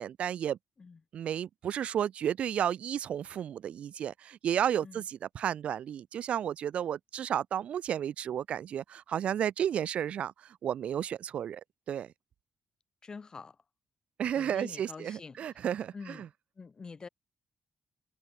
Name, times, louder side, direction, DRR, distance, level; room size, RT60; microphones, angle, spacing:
voice 1, 0.0-0.6 1.1-11.6 11.9-12.1 14.2-16.3, right 9 dB, 70° right, 0.5 m, -32 dB
voice 2, 13.0-13.6 14.3-15.4 15.9-16.3 16.6-17.1, left 4 dB, 35° left, 6.4 m, -45 dB
cardioid pair, 105°, 2 cm